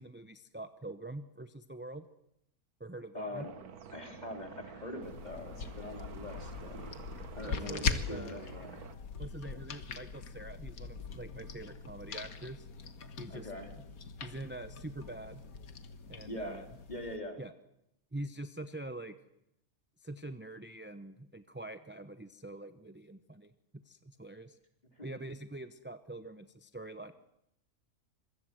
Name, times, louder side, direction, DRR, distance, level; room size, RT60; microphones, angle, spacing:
voice 1, 0.0-2.0 2.8-3.5 7.5-8.4 9.2-12.7 13.2-13.5 14.2-15.4 16.1-16.7 17.4-17.5 18.1-19.2 20.0-24.6 25.0-27.1, right 2 dB, 10° right, 10 dB, 0.6 m, -44 dB
voice 2, 3.1-6.8 7.3-8.8 13.3-13.7 16.2-16.6 16.9-17.4 25.0-25.1, left 1 dB, 30° left, 4 dB, 3.7 m, -43 dB
sound 1, 3.3-9.0, right 7 dB, 85° right, 1.7 m, -50 dB
sound 2, 5.0-17.2, left 5 dB, 75° left, 1.8 m, -41 dB
26.0 x 22.5 x 7.9 m, 0.79 s
omnidirectional pair, 1.5 m